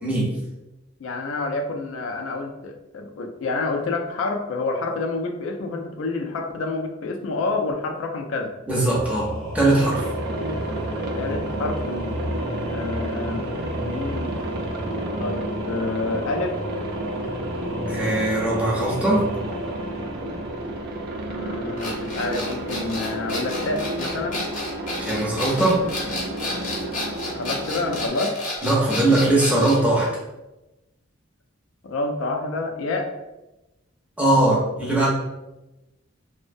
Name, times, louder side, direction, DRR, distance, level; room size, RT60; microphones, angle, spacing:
voice 1, 0.0-0.3 8.7-10.0 17.9-19.3 25.0-25.8 28.6-30.1 34.2-35.1, right 2 dB, 5° right, -5 dB, 0.6 m, -20 dB
voice 2, 1.0-8.6 11.1-12.3 12.7-13.6 13.8-14.3 15.2-16.6 21.3-24.5 27.2-28.3 31.8-33.1, left 3 dB, 80° left, 4 dB, 0.4 m, -28 dB
Singing / Musical instrument, 8.9-21.4, equal, 85° right, 0.7 m, -32 dB
Aircraft, 9.8-28.1, right 1 dB, 55° right, 0.3 m, -32 dB
sound 1, 21.8-29.8, left 2 dB, 40° left, 0.6 m, -31 dB
2.5 x 2.0 x 2.5 m, 0.99 s
head